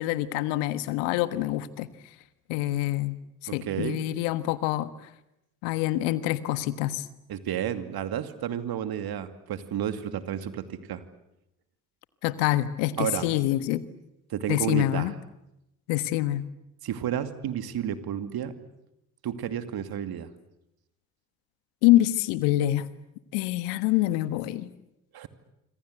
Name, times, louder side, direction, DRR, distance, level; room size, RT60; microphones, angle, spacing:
voice 1, 0.0-1.9 2.5-3.2 3.5-4.9 5.6-7.0 12.2-13.8 14.5-15.1 15.9-16.4 21.8-22.9 23.3-24.7, left 15 dB, 75° left, 14 dB, 1.5 m, -25 dB
voice 2, 3.5-4.0 7.3-11.0 13.0-13.2 14.3-15.1 16.8-18.5 19.2-20.3 25.1-25.3, right 9 dB, 55° right, 10 dB, 2.6 m, -31 dB
26.5 x 26.0 x 8.1 m, 0.86 s
hypercardioid pair, 50°, 43 cm